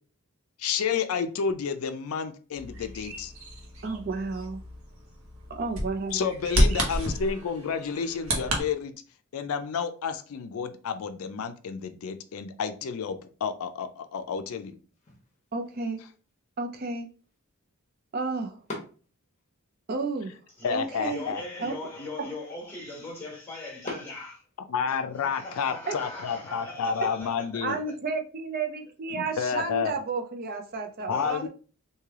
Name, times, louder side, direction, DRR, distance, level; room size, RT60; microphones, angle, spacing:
voice 1, 0.6-3.3 6.1-8.9 9.3-14.8 20.6-21.4 24.7-27.8 29.1-30.0 31.1-31.5, left 6 dB, 75° left, 0.4 m, -30 dB
Bird vocalization bird call bird song, 2.6-8.6, equal, 75° right, 1.1 m, -30 dB
voice 2, 3.8-4.6 5.5-6.3 15.5-16.0 16.6-17.1 18.1-18.6 19.9-20.4 20.7-21.3 21.6-21.7 25.9-26.0 27.6-31.5, right 3 dB, 45° right, 0.4 m, -32 dB
sound 1, 14.9-25.0, left 2 dB, 30° left, 0.9 m, -48 dB
voice 3, 20.6-24.4 25.1-27.9 31.1-31.4, left 2 dB, 10° left, 1.3 m, -40 dB
3.2 x 2.7 x 3.5 m
head